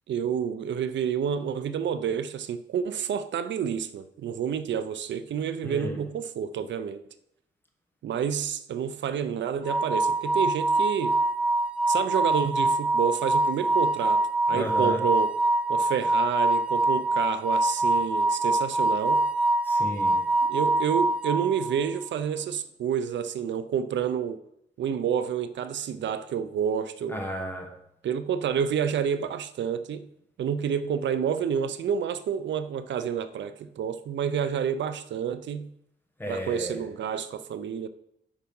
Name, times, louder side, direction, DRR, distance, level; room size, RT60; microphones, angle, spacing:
voice 1, 0.1-7.0 8.0-11.2 11.9-15.3 15.7-19.2 20.5-24.4 24.8-27.2 28.0-30.0 30.4-35.7 36.3-37.9, right 8 dB, 75° right, 0.5 m, -29 dB
voice 2, 5.6-6.0 14.5-15.0 19.6-20.2 27.1-27.7 36.2-36.8, equal, 10° left, 1.3 m, -33 dB
sound 1, 9.6-21.9, right 2 dB, 5° right, 0.3 m, -24 dB
8.8 x 4.7 x 5.4 m
wide cardioid pair, 175°, 19 cm